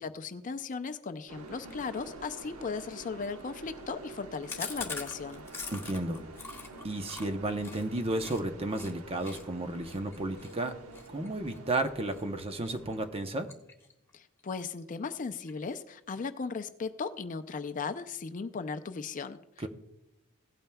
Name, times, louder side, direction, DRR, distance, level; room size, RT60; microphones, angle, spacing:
voice 1, 0.0-5.4 14.1-19.4, left 5 dB, 35° left, 9 dB, 0.4 m, -37 dB
sound 1, 1.3-13.1, right 2 dB, 85° right, 1.0 m, -48 dB
Chewing mastication, 4.5-8.4 8.7-8.9 9.2-12.2 12.6-12.9 13.2-14.1 14.4-14.5 14.8-14.9 15.2-15.8, left 4 dB, 10° left, 1.5 m, -43 dB
voice 2, 5.7-6.2 6.8-10.7 11.1-13.5 19.6-19.7, right 2 dB, 25° right, 7 dB, 0.8 m, -33 dB
16.5 x 8.9 x 2.3 m, 0.89 s
head